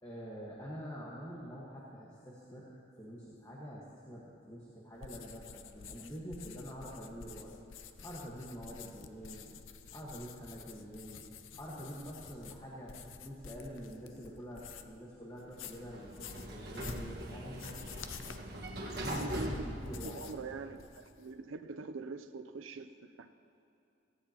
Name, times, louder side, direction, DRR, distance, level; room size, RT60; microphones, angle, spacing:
voice 1, 0.0-7.5 8.0-9.6 9.9-11.3 11.6-17.6 18.9-20.2, equal, 20° left, -5 dB, 1.4 m, -46 dB
sound 1, 5.0-15.0 15.4-20.4 20.7-21.3, left 6 dB, 85° left, 0.6 m, -50 dB
Sliding door, 15.5-20.7, right 1 dB, 55° right, 1.4 m, -41 dB
voice 2, 19.2-19.7 20.0-23.3, right 3 dB, 85° right, 8 dB, 0.5 m, -43 dB
18.0 x 15.5 x 2.9 m, 2.8 s
head